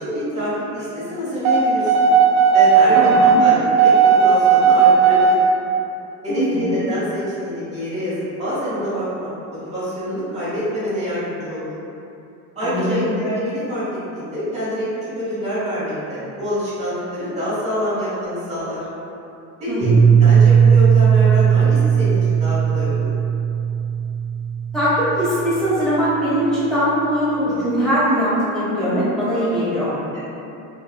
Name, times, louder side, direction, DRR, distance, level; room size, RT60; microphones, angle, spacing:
voice 1, 0.0-2.0 2.5-5.4 6.2-9.3 9.6-11.7 12.5-13.8 14.1-18.8 19.6-19.9 20.2-23.1 30.1-30.2, equal, 20° right, -11 dB, 1.1 m, -26 dB
sound 1, 1.4-5.4, right 6 dB, 90° right, 0.5 m, -14 dB
voice 2, 2.9-3.4 6.3-6.8 12.6-13.0 19.7-20.2 24.7-29.9, equal, ahead, -15 dB, 1.0 m, -21 dB
Piano, 19.8-25.4, right 7 dB, 60° left, 0.8 m, -16 dB
2.7 x 2.2 x 2.4 m, 2.8 s
cardioid pair, 140°, 35 cm